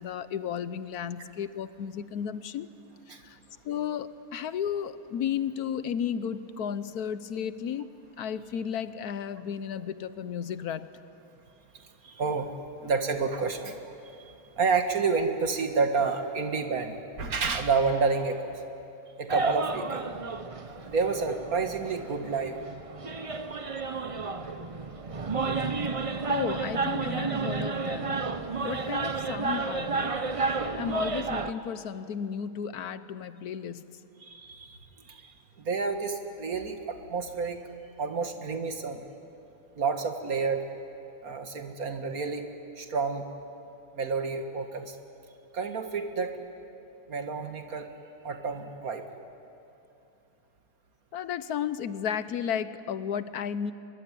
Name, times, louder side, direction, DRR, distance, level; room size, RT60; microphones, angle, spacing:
voice 1, 0.0-2.7 3.2-3.4 3.6-7.9 8.2-10.9 26.3-28.3 28.6-30.3 30.8-33.8 51.1-53.7, left 8 dB, 75° left, 14 dB, 1.3 m, -33 dB
voice 2, 12.0-13.9 14.2-18.5 19.2-20.1 20.9-22.6 34.2-34.8 35.1-35.3 35.6-37.6 38.0-39.0 39.8-40.6 41.2-42.4 42.8-43.3 43.9-45.0 45.5-46.3 47.1-47.9 48.2-49.0, right 4 dB, 65° right, 6 dB, 2.1 m, -29 dB
sound 1, 19.3-31.5, right 4 dB, 30° right, 0.6 m, -31 dB
23.5 x 22.0 x 9.9 m, 2.8 s
omnidirectional pair, 1.7 m